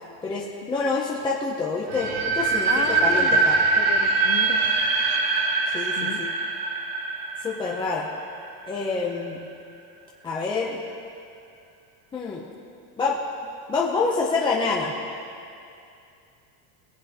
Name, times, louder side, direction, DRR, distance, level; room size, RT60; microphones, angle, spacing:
voice 1, 0.2-3.6 5.7-6.3 7.4-8.1 8.7-9.4 10.2-10.8 12.1-12.4 13.0-13.2 13.7-14.9, left 4 dB, 10° left, -3 dB, 0.5 m, -27 dB
sound 1, 1.9-8.8, right 4 dB, 50° right, 1.4 m, -23 dB
voice 2, 2.7-3.4 3.8-4.6 6.0-6.2, left 11 dB, 60° left, 7 dB, 0.9 m, -33 dB
22.0 x 7.9 x 2.8 m, 2.5 s
cardioid pair, 170°, 44 cm